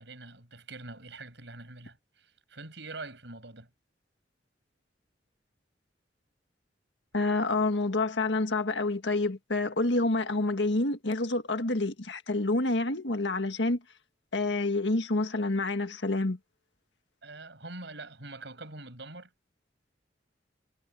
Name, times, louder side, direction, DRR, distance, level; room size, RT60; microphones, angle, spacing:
voice 1, 0.0-3.7 17.2-19.3, right 2 dB, 75° right, 7.7 m, -44 dB
voice 2, 7.1-13.8 14.3-16.4, left 2 dB, 75° left, 1.7 m, -28 dB
head